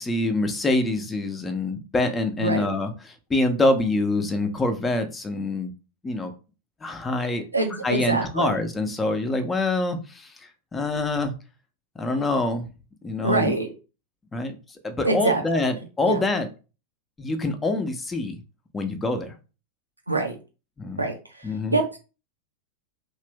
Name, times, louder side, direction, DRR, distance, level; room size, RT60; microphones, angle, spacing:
voice 1, 0.0-5.7 6.0-6.3 6.8-7.4 7.8-11.3 12.0-12.7 13.0-13.5 14.3-14.5 14.8-16.5 17.2-18.4 18.7-19.3 20.8-21.0 21.4-21.8, left 2 dB, 15° left, 6 dB, 0.6 m, -25 dB
voice 2, 2.4-2.7 7.3-8.6 13.2-13.7 15.0-15.6 16.1-16.2 20.1-20.4 21.0-22.0, right 2 dB, 85° right, 3 dB, 0.6 m, -25 dB
2.9 x 2.6 x 3.4 m, 0.33 s
figure-of-eight pair, 90°, 0 cm